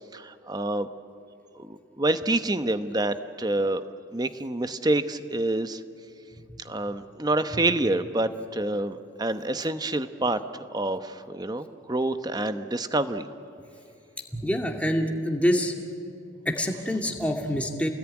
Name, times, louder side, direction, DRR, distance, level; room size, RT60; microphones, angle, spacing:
voice 1, 0.1-0.9 1.5-3.8 4.1-5.8 6.6-10.4 10.7-13.2, right 2 dB, 20° right, 10 dB, 0.9 m, -27 dB
voice 2, 14.3-15.7 16.5-17.9, equal, 5° left, 2 dB, 2.2 m, -26 dB
29.0 x 20.5 x 9.9 m, 2.8 s
head